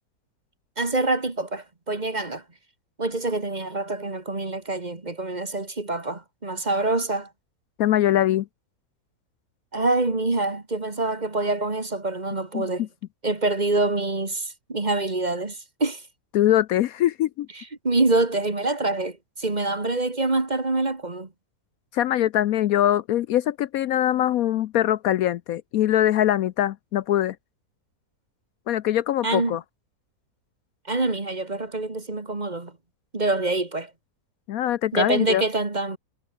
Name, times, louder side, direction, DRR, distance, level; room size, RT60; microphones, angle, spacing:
voice 1, 0.8-2.4 3.0-7.3 9.7-12.9 13.2-16.0 17.6-21.3 29.2-29.6 30.9-32.7 33.1-33.9 34.9-36.0, right 2 dB, 25° right, 1.9 m, -26 dB
voice 2, 7.8-8.5 12.5-12.9 16.3-17.5 21.9-27.4 28.7-29.6 34.5-35.4, left 12 dB, 70° left, 1.0 m, -22 dB
omnidirectional pair, 1.7 m